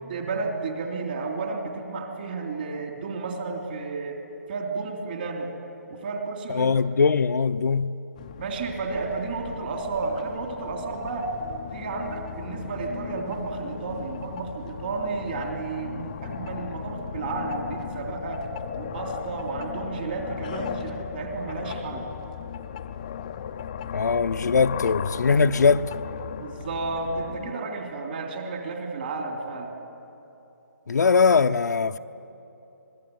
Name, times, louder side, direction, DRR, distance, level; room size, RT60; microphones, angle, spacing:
voice 1, 0.1-4.2 4.5-5.5 5.9-6.7 8.4-11.3 11.7-18.5 18.8-22.1 26.4-29.8, right 4 dB, 35° right, 3.2 m, -32 dB
voice 2, 6.5-7.9 23.9-25.9 30.9-32.0, left 5 dB, 70° left, 0.8 m, -21 dB
sound 1, 8.2-27.5, left 8 dB, 25° left, 0.6 m, -37 dB
26.0 x 21.5 x 9.4 m
hypercardioid pair, 170°, 10 cm